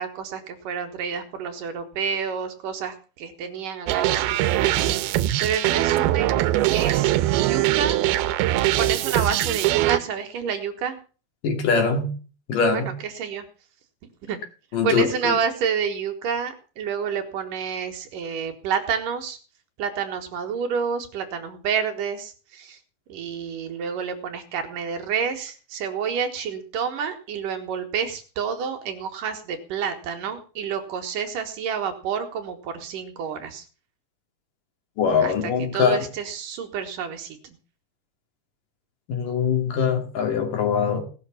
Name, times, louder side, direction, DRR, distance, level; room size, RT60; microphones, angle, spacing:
voice 1, 0.0-6.4 6.7-8.0 8.8-11.0 12.7-13.5 14.3-14.4 14.8-19.4 19.8-22.8 23.1-33.6 35.2-37.6, right 7 dB, 65° right, 6 dB, 2.9 m, -29 dB
sound 1, 3.9-10.0, right 14 dB, 85° right, 2.7 m, -22 dB
voice 2, 11.4-12.1 12.5-12.9 14.7-15.4 35.0-36.1 39.1-41.0, left 6 dB, 60° left, 5 dB, 3.9 m, -22 dB
18.5 x 6.6 x 7.1 m, 0.38 s
omnidirectional pair, 4.4 m